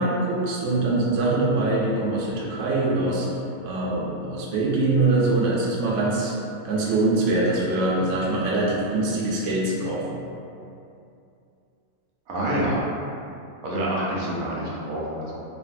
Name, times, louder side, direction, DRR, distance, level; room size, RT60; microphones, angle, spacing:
voice 1, 0.0-3.3 3.6-6.3 6.6-10.2, right 2 dB, 70° right, -5 dB, 0.8 m, -23 dB
voice 2, 12.3-12.9 13.6-15.4, right 1 dB, 90° right, -5 dB, 1.1 m, -27 dB
2.6 x 2.4 x 2.4 m, 2.6 s
omnidirectional pair, 1.5 m